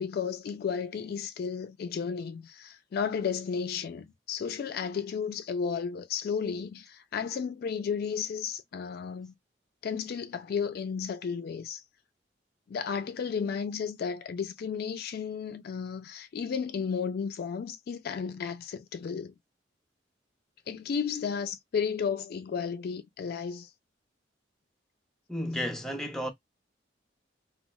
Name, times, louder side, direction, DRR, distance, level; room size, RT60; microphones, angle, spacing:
voice 1, 0.0-9.3 9.8-11.8 12.7-19.3 20.7-23.7, left 6 dB, 55° left, 0.3 m, -33 dB
voice 2, 25.3-26.3, equal, 5° left, 0.5 m, -32 dB
3.2 x 2.3 x 2.2 m
head